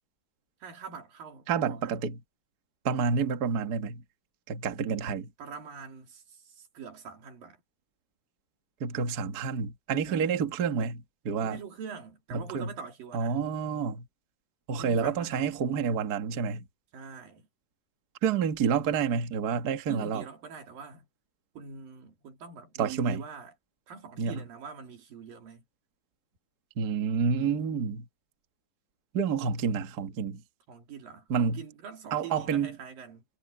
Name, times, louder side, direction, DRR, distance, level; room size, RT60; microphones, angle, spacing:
voice 1, 0.6-2.0 5.4-7.6 10.1-10.4 11.4-13.4 14.8-15.6 16.9-17.5 19.9-21.1 21.6-23.5 23.9-25.7 27.4-28.0 30.7-33.3, right 6 dB, 85° right, 5.0 m, -44 dB
voice 2, 1.5-2.2 2.8-4.0 4.5-5.3 8.8-11.6 12.3-12.7 13.1-14.1 14.7-16.7 18.2-20.2 22.8-23.2 24.2-24.4 26.8-28.0 29.1-30.4 31.3-31.6 32.1-32.7, right 6 dB, 40° right, 1.4 m, -29 dB
omnidirectional pair, 3.9 m